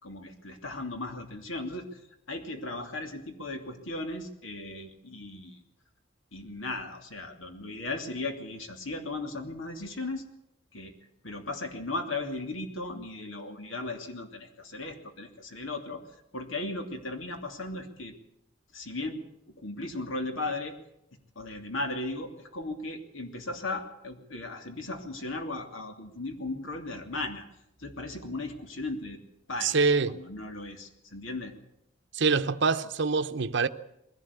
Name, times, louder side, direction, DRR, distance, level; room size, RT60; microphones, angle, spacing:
voice 1, 0.0-2.0 2.3-5.6 6.3-10.3 10.7-10.9 11.2-16.0 16.3-18.2 18.7-19.2 19.6-20.7 21.3-27.4 27.8-29.2 29.5-29.8 30.0-31.5, left 2 dB, 85° left, 2.9 m, -36 dB
voice 2, 29.6-30.2 32.1-33.7, right 4 dB, 65° right, 0.9 m, -25 dB
22.0 x 17.0 x 8.4 m
head